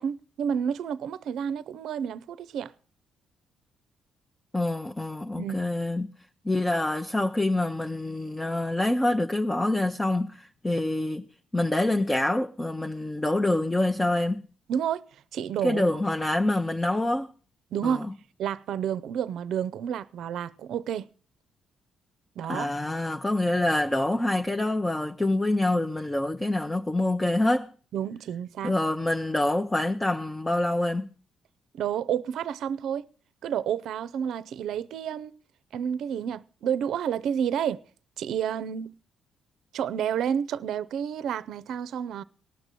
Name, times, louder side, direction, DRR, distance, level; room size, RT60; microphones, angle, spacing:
voice 1, 0.0-2.7 5.4-5.6 14.7-15.9 17.7-18.1 18.4-21.1 22.4-22.7 27.9-28.7 31.7-33.1 33.4-35.3 35.7-37.8 38.2-38.9 39.7-42.2, right 8 dB, 75° right, 0.5 m, -30 dB
voice 2, 4.5-6.1 6.4-11.2 11.5-14.4 15.6-17.3 17.8-18.1 22.5-27.7 28.6-31.1, left 1 dB, 15° left, 0.6 m, -26 dB
18.5 x 6.2 x 6.6 m
cardioid pair, 90°, 0 cm